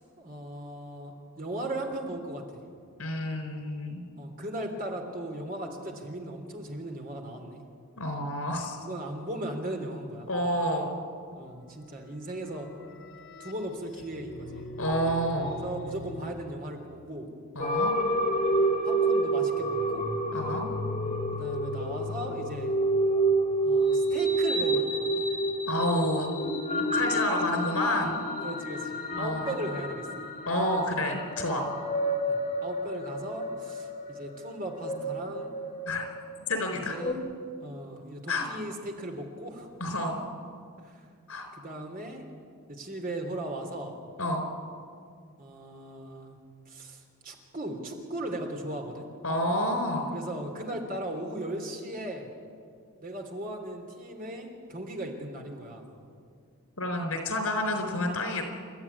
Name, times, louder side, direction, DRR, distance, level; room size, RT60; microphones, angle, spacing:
voice 1, 0.0-2.6 4.2-7.6 8.8-10.3 11.3-12.7 13.4-14.7 15.4-17.3 18.8-20.1 21.3-22.7 23.6-25.1 28.4-30.1 31.7-31.9 32.2-35.5 36.7-37.2 37.6-39.7 40.8-41.1 41.6-42.2 42.7-43.9 45.4-46.4 46.7-49.1 50.1-52.3 53.0-55.9, right 1 dB, 40° right, 3 dB, 3.3 m, -37 dB
voice 2, 3.0-4.0 8.0-8.8 10.3-10.9 14.8-15.5 17.5-17.9 20.3-20.7 25.7-26.3 26.9-28.2 29.2-29.5 30.5-31.7 35.9-36.1 36.5-37.0 38.3-38.5 39.8-40.2 41.3-41.5 44.2-44.5 49.2-50.1 56.8-58.5, left 1 dB, 80° left, 6 dB, 4.4 m, -29 dB
sound 1, 12.3-16.3, equal, 60° left, 2.8 m, -42 dB
sound 2, 17.6-37.1, right 1 dB, 30° left, 2.8 m, -29 dB
29.0 x 13.0 x 9.8 m, 2.3 s
head